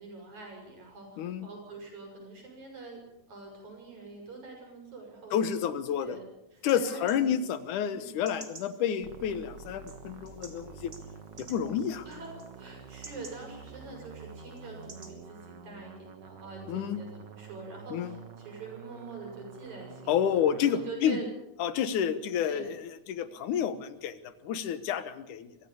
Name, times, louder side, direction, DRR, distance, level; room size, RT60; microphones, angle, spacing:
voice 1, 0.0-3.0 3.3-5.7 6.0-6.2 6.5-7.4 7.9-8.1 12.1-21.3 22.4-22.7, right 3 dB, 70° right, 1 dB, 8.2 m, -45 dB
voice 2, 1.2-1.5 5.3-6.2 6.6-10.9 11.4-12.1 16.7-17.0 17.9-18.1 20.1-21.2 21.6-25.6, left 8 dB, 90° left, 12 dB, 2.7 m, -30 dB
sound 1, 6.6-15.1, right 3 dB, 30° right, 3.2 m, -53 dB
sound 2, 9.0-20.9, right 5 dB, 45° right, 1.6 m, -48 dB
24.0 x 16.0 x 7.1 m, 0.88 s
omnidirectional pair, 3.5 m